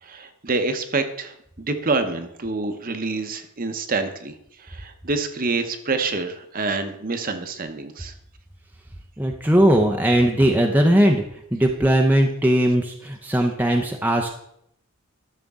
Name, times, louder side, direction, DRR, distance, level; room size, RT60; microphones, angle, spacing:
voice 1, 0.0-8.1, right 3 dB, 40° right, 7 dB, 0.9 m, -27 dB
voice 2, 9.2-11.2 11.5-14.4, right 1 dB, 10° right, 2 dB, 0.6 m, -19 dB
12.5 x 6.6 x 3.6 m, 0.73 s
head